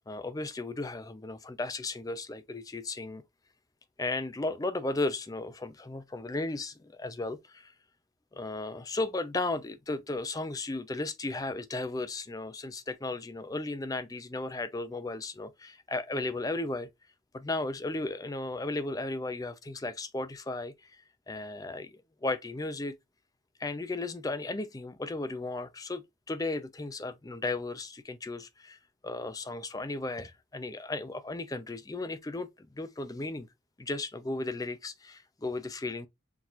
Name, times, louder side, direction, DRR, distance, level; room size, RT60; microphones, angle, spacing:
voice 1, 0.1-3.2 4.0-7.7 8.3-16.9 17.3-22.9 23.6-28.8 29.0-33.5 33.8-36.1, left 2 dB, 15° left, 0.4 m, -35 dB
5.9 x 2.9 x 2.5 m
head